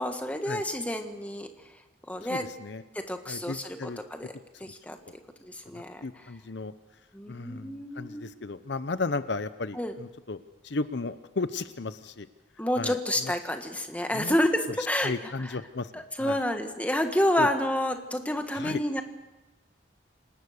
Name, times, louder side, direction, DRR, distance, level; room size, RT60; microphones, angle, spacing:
voice 1, 0.0-1.5 2.1-2.5 2.9-4.3 4.6-5.0 5.4-6.0 7.1-8.2 9.8-9.9 12.6-15.1 15.5-15.6 15.9-19.0, left 1 dB, 5° left, 6 dB, 1.5 m, -29 dB
voice 2, 2.3-2.8 3.3-4.0 4.5-4.7 5.7-6.7 7.3-12.3 12.8-13.3 14.1-14.4 15.0-16.4 17.4-17.5 18.5-18.8, left 3 dB, 60° left, 12 dB, 0.7 m, -34 dB
27.5 x 19.0 x 6.6 m, 1.1 s
head